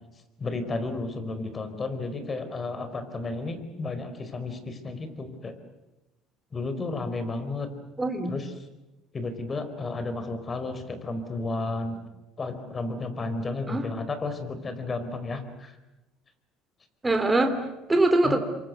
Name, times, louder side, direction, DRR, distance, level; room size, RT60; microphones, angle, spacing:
voice 1, 0.4-5.5 6.5-7.7 8.3-8.5 9.1-12.0 12.4-15.7 18.2-18.4, left 3 dB, 30° left, 10 dB, 4.6 m, -32 dB
voice 2, 8.0-8.3 13.7-13.9 17.0-18.4, right 2 dB, 15° right, 6 dB, 3.1 m, -23 dB
27.0 x 23.5 x 8.2 m, 1.0 s
supercardioid pair, 80°, 0 cm